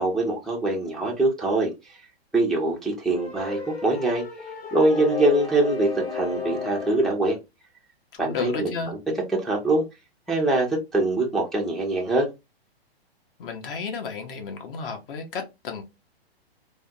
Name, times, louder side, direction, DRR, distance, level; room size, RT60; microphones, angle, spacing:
voice 1, 0.0-1.9 2.3-4.2 4.7-7.4 8.2-9.0 9.3-9.8 10.3-12.3, right 2 dB, ahead, 0.4 m, -23 dB
sound 1, 3.1-7.2, left 5 dB, 90° left, 2.1 m, -33 dB
voice 2, 8.1-8.9 13.4-15.8, left 5 dB, 60° left, 1.0 m, -32 dB
3.4 x 2.2 x 2.6 m
hypercardioid pair, 125°, 31 cm